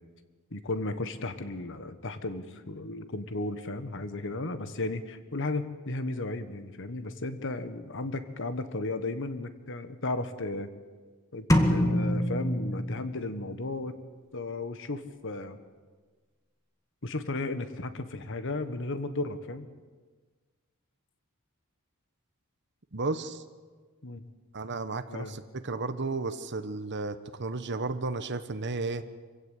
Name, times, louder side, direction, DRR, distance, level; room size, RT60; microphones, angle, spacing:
voice 1, 0.5-10.7 11.3-14.0 14.3-15.6 17.0-19.7 24.0-24.3 25.1-25.4, left 2 dB, 60° left, 10 dB, 1.5 m, -34 dB
sound 1, 11.5-13.4, equal, 15° left, 1.8 m, -25 dB
voice 2, 22.9-23.4 24.5-29.0, right 3 dB, 55° right, 9 dB, 1.2 m, -33 dB
25.5 x 16.5 x 8.3 m, 1.4 s
head